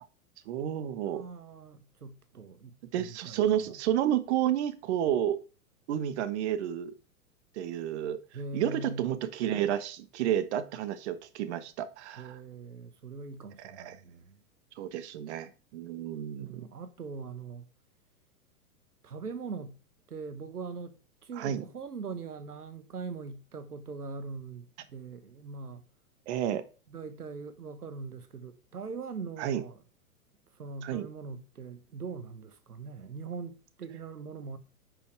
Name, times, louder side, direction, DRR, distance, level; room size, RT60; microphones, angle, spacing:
voice 1, 0.5-1.2 2.9-5.4 5.9-6.9 7.5-8.2 8.5-12.4 13.6-14.0 14.8-16.6 21.4-21.6 26.3-26.6 29.4-29.6 30.8-31.1, right 10 dB, 50° right, 1.3 m, -31 dB
voice 2, 1.0-3.7 8.3-9.1 12.2-14.4 16.4-17.7 19.0-19.8 20.1-25.8 26.9-29.8 30.5-34.6, right 4 dB, 85° right, 1.3 m, -41 dB
9.9 x 5.9 x 4.7 m
figure-of-eight pair, 105°, 45 cm